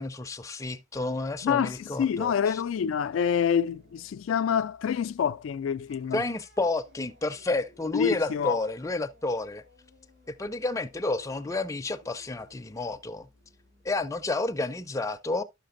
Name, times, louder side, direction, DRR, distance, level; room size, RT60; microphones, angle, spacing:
voice 1, 0.0-2.6 6.1-9.6 10.3-13.3 13.8-15.4, left 2 dB, 15° left, 0.4 m, -30 dB
sound 1, 0.9-14.3, equal, 60° right, 2.5 m, -59 dB
voice 2, 1.4-6.2 7.9-8.6, left 7 dB, 80° left, 0.3 m, -27 dB
12.0 x 5.8 x 2.5 m
head